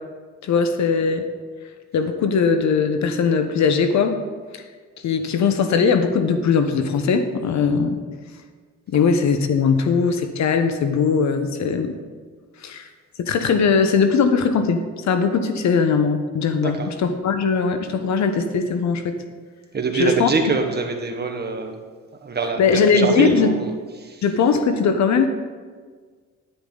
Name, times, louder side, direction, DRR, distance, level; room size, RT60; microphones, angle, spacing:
voice 1, 0.4-1.3 1.9-4.2 5.0-8.0 8.9-11.9 12.6-12.9 13.2-19.2 19.9-20.3 22.6-23.6 24.2-25.3, left 5 dB, 65° left, 8 dB, 1.1 m, -20 dB
voice 2, 19.7-21.8 22.2-23.7 24.0-24.2, right 4 dB, 35° right, 4 dB, 1.5 m, -24 dB
10.5 x 9.9 x 4.0 m, 1.5 s
cardioid pair, 90°, 30 cm